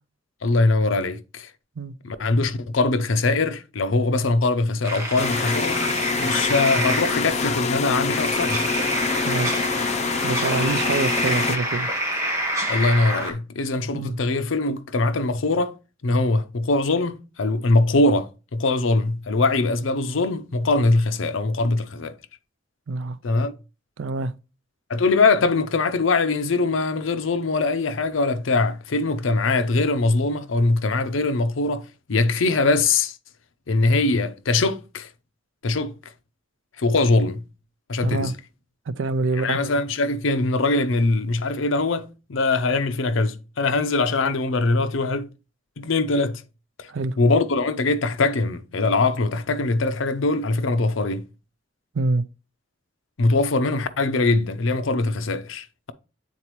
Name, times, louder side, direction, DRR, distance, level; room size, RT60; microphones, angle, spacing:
voice 1, 0.4-1.5 2.0-5.8 6.2-8.7 12.7-15.7 16.0-22.1 23.2-23.5 24.9-33.2 33.7-35.1 35.6-35.9 36.8-37.4 37.9-38.3 39.3-45.3 45.8-46.4 46.8-46.9 47.2-51.2 53.2-55.9, left 3 dB, 80° left, 0.6 m, -22 dB
sound 1, 4.8-13.3, equal, 15° right, 1.5 m, -27 dB
sound 2, 5.2-11.6, left 5 dB, 35° left, 0.6 m, -26 dB
voice 2, 9.3-9.6 10.2-11.9 13.9-14.2 22.9-23.2 24.0-24.3 38.0-38.3 38.9-39.6 46.9-47.2 51.9-52.2, right 3 dB, 70° right, 0.5 m, -25 dB
8.4 x 4.1 x 3.0 m
head